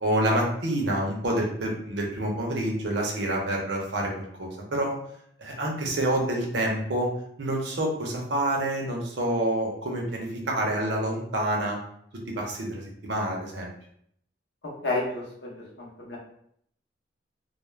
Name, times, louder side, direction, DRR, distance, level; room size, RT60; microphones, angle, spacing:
voice 1, 0.0-4.9 5.4-7.1 7.4-11.8 12.4-13.7, right 1 dB, 80° right, -1 dB, 0.7 m, -27 dB
voice 2, 14.6-15.5 15.8-16.2, left 2 dB, 70° left, -4 dB, 0.7 m, -31 dB
2.3 x 2.0 x 3.1 m, 0.68 s
head